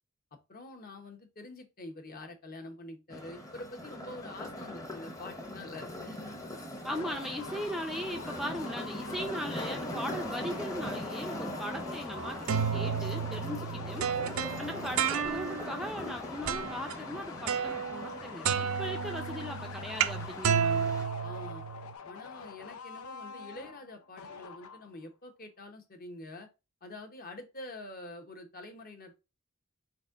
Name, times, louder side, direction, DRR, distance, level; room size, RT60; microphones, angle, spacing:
voice 1, 0.5-6.3 7.2-7.3 21.2-21.6 22.0-26.5 26.8-29.1, left 2 dB, 45° left, 1.0 m, -46 dB
sound 1, 3.1-21.0, left 1 dB, 15° left, 0.8 m, -41 dB
voice 2, 6.8-14.1 14.6-20.9, equal, ahead, 0.5 m, -39 dB
sound 2, 6.9-25.0, left 6 dB, 80° left, 0.6 m, -45 dB
sound 3, 12.2-15.7 16.5-16.9 17.5-18.2 18.4-21.9, right 7 dB, 70° right, 0.5 m, -31 dB
4.5 x 4.2 x 2.5 m
head